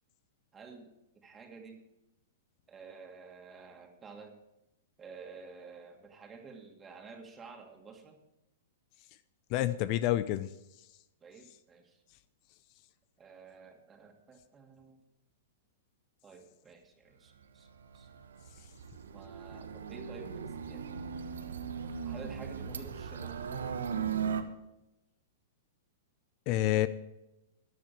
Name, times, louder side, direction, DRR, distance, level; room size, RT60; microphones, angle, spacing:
voice 1, 0.5-1.8 2.7-4.4 5.0-8.2 11.2-12.0 13.2-15.0 16.2-17.7 17.9-18.1 19.1-21.0 22.0-23.4, right 4 dB, 20° right, 3 dB, 2.3 m, -51 dB
voice 2, 9.5-10.5 26.5-26.9, left 14 dB, 45° left, 14 dB, 0.5 m, -28 dB
sound 1, 17.9-24.4, right 7 dB, 75° right, 1.1 m, -37 dB
14.0 x 10.0 x 4.7 m, 0.94 s
hypercardioid pair, 110°, 0 cm